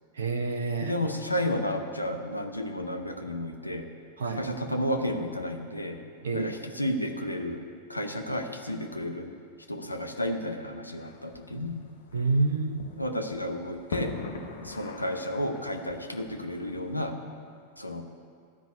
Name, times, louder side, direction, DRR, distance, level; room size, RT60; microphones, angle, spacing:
voice 1, 0.1-1.0 4.2-4.5 6.2-6.6 12.1-12.8, right 3 dB, 65° right, 6 dB, 0.8 m, -28 dB
voice 2, 0.8-3.8 4.4-6.0 6.3-6.5 6.8-7.6 7.9-9.3 9.7-11.8 13.0-14.1 14.6-17.1 17.8-18.0, left 1 dB, 85° left, 5 dB, 0.8 m, -32 dB
sound 1, 11.0-17.0, left 4 dB, 65° left, 1.2 m, -43 dB
12.0 x 6.1 x 8.1 m, 2.2 s
figure-of-eight pair, 90°, 0 cm